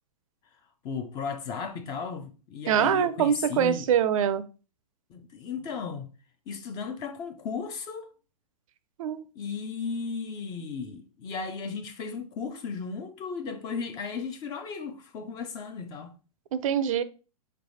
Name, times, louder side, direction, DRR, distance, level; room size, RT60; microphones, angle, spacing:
voice 1, 0.8-3.9 5.1-6.1 6.5-8.1 9.4-16.1, left 5 dB, 20° left, 0.3 m, -35 dB
voice 2, 2.7-4.4 9.0-9.3 16.5-17.0, right 8 dB, 60° right, 0.4 m, -24 dB
4.2 x 3.3 x 2.6 m
hypercardioid pair, 135°, 20 cm